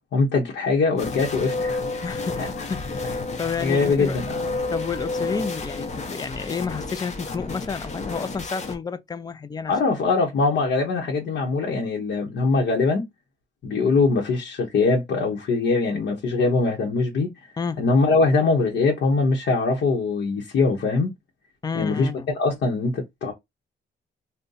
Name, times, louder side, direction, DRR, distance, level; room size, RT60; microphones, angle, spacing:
voice 1, 0.1-2.0 2.4-2.5 3.6-4.4 9.7-13.0 13.6-17.3 17.8-21.1 21.7-22.1 22.4-23.3, left 3 dB, 70° left, 0.9 m, -22 dB
sound 1, 1.0-8.7, left 3 dB, 40° left, 0.7 m, -31 dB
voice 2, 2.0-4.2 4.7-9.7 17.6-17.8 21.6-22.3, left 5 dB, 20° left, 0.4 m, -30 dB
2.6 x 2.2 x 3.8 m
cardioid pair, 115°, 19 cm